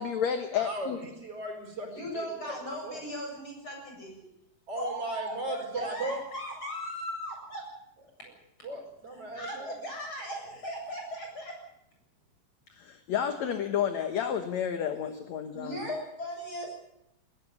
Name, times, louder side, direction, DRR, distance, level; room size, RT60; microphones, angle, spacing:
voice 1, 0.0-1.0 12.8-15.8, left 8 dB, 60° left, 7 dB, 2.2 m, -31 dB
voice 2, 0.5-2.5 2.8-3.0 4.7-6.2 8.6-9.8, right 2 dB, 40° right, 2 dB, 5.5 m, -37 dB
voice 3, 1.9-4.2 4.8-7.6 9.1-11.5 15.0-15.2 15.5-16.7, equal, 35° left, 1 dB, 8.7 m, -38 dB
20.0 x 17.5 x 9.5 m, 0.79 s
omnidirectional pair, 4.1 m